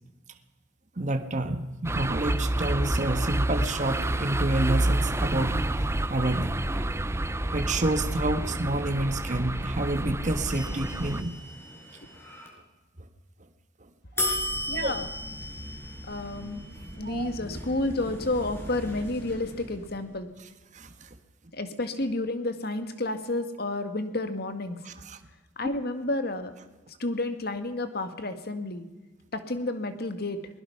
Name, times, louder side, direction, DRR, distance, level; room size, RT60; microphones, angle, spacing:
voice 1, 1.0-6.6 7.5-11.4 13.8-13.9 14.2-14.3 14.7-14.9 17.0-17.3 20.7-21.1 24.8-25.2, right 2 dB, 40° right, 8 dB, 1.4 m, -29 dB
sound 1, 1.8-11.2, right 1 dB, 15° right, 0.7 m, -28 dB
sound 2, 10.5-12.5 14.2-20.2, left 1 dB, 15° left, 5.6 m, -36 dB
voice 2, 14.7-15.1 16.1-16.6 16.9-20.3 21.5-24.8 25.6-26.5 27.0-28.8 29.3-30.4, left 2 dB, 60° left, 8 dB, 2.0 m, -30 dB
21.5 x 21.0 x 5.9 m, 1.2 s
head